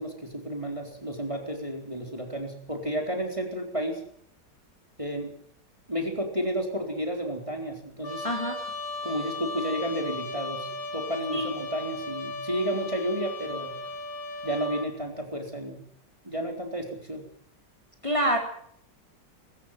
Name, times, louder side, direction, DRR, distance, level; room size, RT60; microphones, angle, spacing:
voice 1, 0.0-4.0 5.0-5.4 5.9-8.3 9.0-13.8 14.4-15.8 16.2-17.2, equal, 15° right, 2 dB, 4.2 m, -32 dB
Trumpet, 8.0-14.9, left 2 dB, 55° left, 4.4 m, -36 dB
voice 2, 8.2-8.6 11.3-11.5 18.0-18.4, equal, 15° left, 1 dB, 3.8 m, -26 dB
23.5 x 13.5 x 9.2 m, 0.66 s
omnidirectional pair, 1.9 m